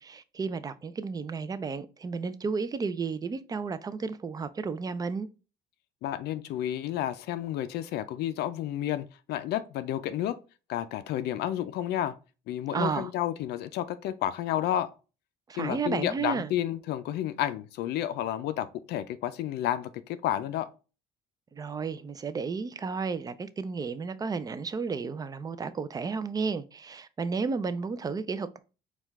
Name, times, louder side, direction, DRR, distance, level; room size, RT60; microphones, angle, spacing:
voice 1, 0.0-5.3 12.7-13.1 15.5-16.5 21.5-28.6, right 5 dB, 20° right, 0.4 m, -32 dB
voice 2, 6.0-10.4 10.7-12.1 12.5-14.9 15.6-20.7, left 12 dB, 75° left, 0.4 m, -31 dB
4.5 x 2.3 x 3.4 m
cardioid pair, 110°, 17 cm